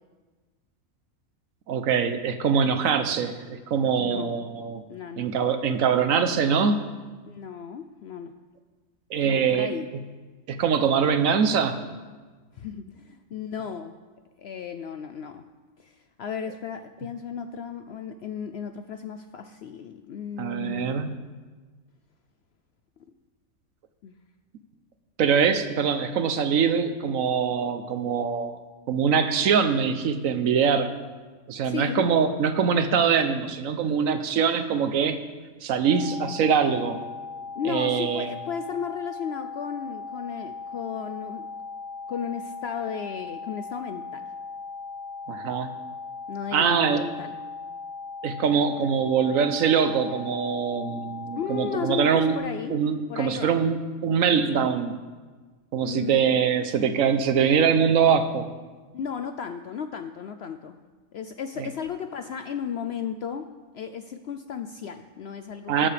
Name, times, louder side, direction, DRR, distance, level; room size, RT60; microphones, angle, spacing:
voice 1, 1.7-4.8 5.2-6.8 9.1-9.7 10.5-11.8 20.4-21.1 25.2-28.6 28.9-30.9 31.5-35.2 35.6-37.0 37.7-38.3 45.3-45.7 46.5-47.1 48.2-52.4 52.7-54.9 55.7-58.5 61.6-61.7 65.7-65.9, right 6 dB, 70° right, 9 dB, 1.1 m, -23 dB
voice 2, 4.0-4.3 4.9-5.3 7.3-8.3 9.2-9.9 12.5-14.0 14.4-15.4 15.8-21.0 24.0-24.1 31.6-32.1 37.5-41.5 42.1-44.3 46.3-47.4 51.3-52.8 53.1-53.5 55.8-56.5 58.9-60.8 61.1-65.9, left 7 dB, 65° left, 8 dB, 0.6 m, -34 dB
sound 1, 35.8-52.4, left 4 dB, 30° left, 1.6 m, -38 dB
20.0 x 7.5 x 3.4 m, 1.4 s
omnidirectional pair, 1.5 m